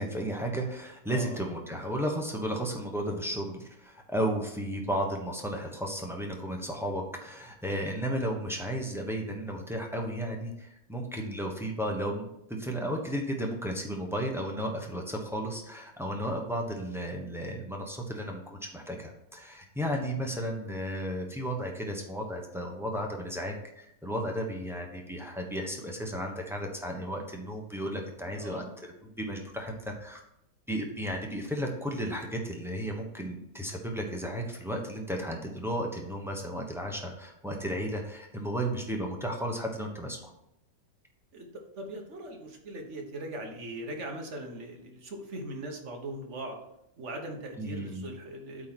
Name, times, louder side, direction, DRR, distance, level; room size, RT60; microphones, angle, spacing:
voice 1, 0.0-12.3 12.6-28.7 29.2-30.2 30.7-40.3 47.6-48.1, equal, ahead, 1 dB, 0.6 m, -34 dB
voice 2, 1.1-1.4 28.2-28.6 41.3-46.6 47.0-48.7, right 1 dB, 45° right, 3 dB, 1.3 m, -40 dB
8.6 x 3.7 x 6.0 m, 0.79 s
omnidirectional pair, 2.0 m